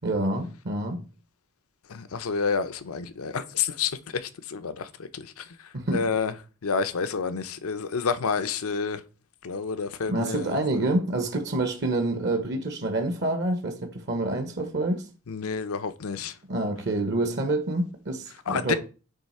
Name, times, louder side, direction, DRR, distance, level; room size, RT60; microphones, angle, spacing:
voice 1, 0.0-1.0 5.7-6.0 10.1-15.1 16.5-18.8, right 2 dB, 50° right, 0.8 m, -27 dB
voice 2, 1.9-5.4 5.9-6.3 6.6-9.0 9.4-10.6 15.3-16.3 18.5-18.8, left 5 dB, 80° left, 0.6 m, -29 dB
9.1 x 3.2 x 4.2 m
head